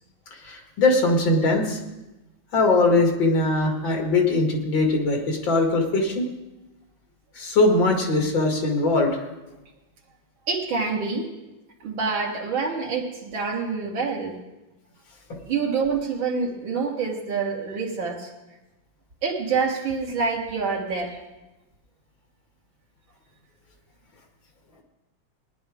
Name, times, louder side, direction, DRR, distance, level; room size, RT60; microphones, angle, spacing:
voice 1, 0.4-1.8 2.5-6.3 7.3-9.2, left 2 dB, 75° left, 1 dB, 2.7 m, -21 dB
voice 2, 10.5-11.3 11.8-14.4 15.5-18.3 19.2-21.2, right 5 dB, 80° right, -2 dB, 2.6 m, -26 dB
19.0 x 10.5 x 3.6 m, 1.0 s
omnidirectional pair, 2.1 m